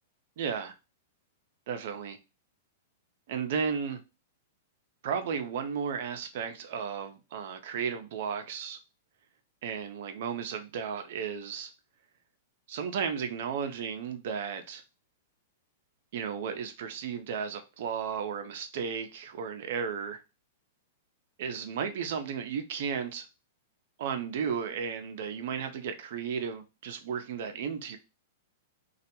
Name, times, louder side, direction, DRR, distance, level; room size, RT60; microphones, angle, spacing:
voice 1, 0.4-0.7 1.7-2.2 3.3-4.0 5.0-8.8 9.6-11.7 12.7-14.8 16.1-20.2 21.4-23.2 24.0-28.0, right 7 dB, 60° right, 0.5 m, -34 dB
2.2 x 2.1 x 2.9 m
hypercardioid pair, 115°, 0 cm